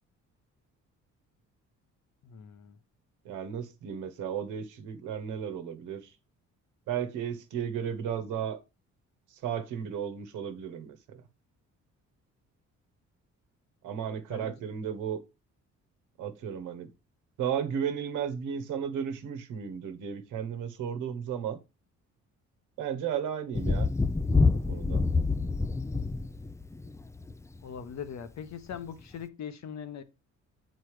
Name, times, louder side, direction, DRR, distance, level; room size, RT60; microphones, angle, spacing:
voice 1, 2.2-2.8 14.3-14.6 27.6-30.0, left 7 dB, 65° left, 1.1 m, -41 dB
voice 2, 3.2-6.2 6.9-8.6 9.3-11.2 13.8-15.2 16.2-16.9 17.4-21.6 22.8-23.9 24.7-25.0, right 8 dB, 90° right, 1.2 m, -34 dB
Thunder, 23.5-27.4 28.7-28.8, left 3 dB, 10° left, 0.4 m, -27 dB
8.2 x 4.2 x 4.8 m
cardioid pair, 90°, 30 cm